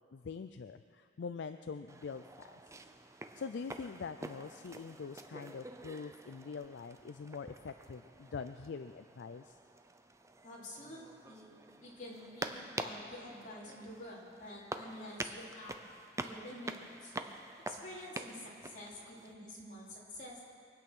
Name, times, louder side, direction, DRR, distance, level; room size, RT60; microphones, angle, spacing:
voice 1, 0.1-2.6 3.4-9.6, left 5 dB, 65° left, 9 dB, 0.4 m, -44 dB
sound 1, 1.9-19.3, right 2 dB, 15° right, 0.6 m, -47 dB
voice 2, 10.4-11.0 11.3-11.5 11.8-15.7 16.2-17.1 17.7-20.4, left 1 dB, 45° left, -5 dB, 3.5 m, -48 dB
23.5 x 8.7 x 6.1 m, 2.4 s
head